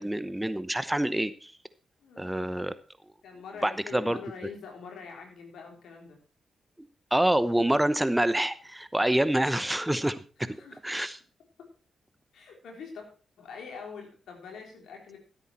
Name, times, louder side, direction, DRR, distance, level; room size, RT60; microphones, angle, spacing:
voice 1, 0.0-1.5 2.2-2.7 3.6-4.2 6.8-10.5 10.8-11.2, right 1 dB, 10° right, 14 dB, 0.9 m, -27 dB
voice 2, 2.0-2.3 3.2-6.2 10.4-10.8 12.3-13.1 13.4-15.2, left 5 dB, 75° left, 1 dB, 3.8 m, -44 dB
14.0 x 8.4 x 4.4 m, 0.38 s
hypercardioid pair, 40°, 0 cm